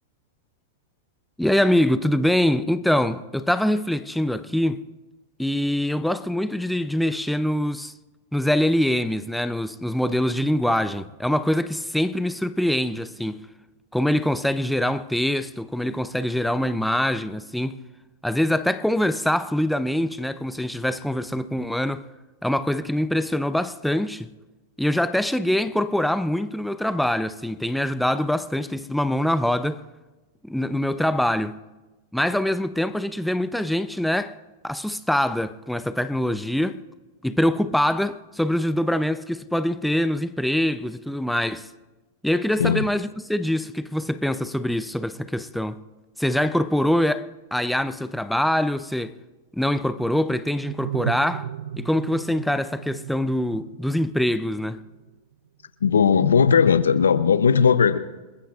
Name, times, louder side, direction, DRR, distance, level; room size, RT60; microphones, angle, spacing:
voice 1, 1.4-4.8 5.4-7.9 8.3-13.4 13.9-17.8 18.2-22.0 22.4-24.3 24.8-29.8 30.4-31.6 32.1-34.4 34.6-36.8 37.2-41.7 42.2-45.8 46.2-49.2 49.5-51.5 51.8-54.8, left 1 dB, ahead, 0.6 m, -24 dB
sound 1, 49.8-55.1, right 10 dB, 75° right, 0.4 m, -36 dB
voice 2, 55.8-58.0, left 6 dB, 85° left, 0.7 m, -17 dB
28.5 x 14.0 x 2.5 m
hypercardioid pair, 105°, 0 cm